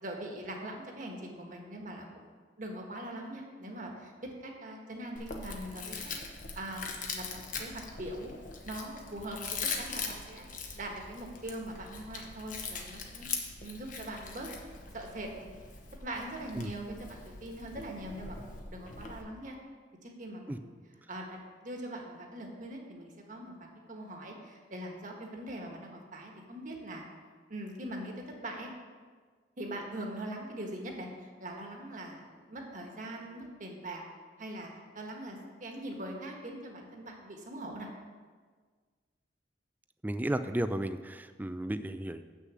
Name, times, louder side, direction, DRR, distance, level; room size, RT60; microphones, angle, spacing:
voice 1, 0.0-2.3 2.6-4.1 4.4-6.0 6.3-8.3 8.6-10.4 10.7-13.3 13.6-14.5 14.9-15.6 16.0-19.6 20.0-20.7 21.1-23.6 23.9-27.0 27.5-28.7 29.6-34.0 34.4-34.7 34.9-37.9, right 1 dB, 50° right, 1 dB, 1.4 m, -42 dB
Chewing mastication, 5.2-19.2, left 4 dB, 50° left, 1.0 m, -41 dB
voice 2, 40.0-42.2, right 1 dB, 10° right, 11 dB, 0.3 m, -33 dB
7.6 x 6.6 x 6.2 m, 1.5 s
head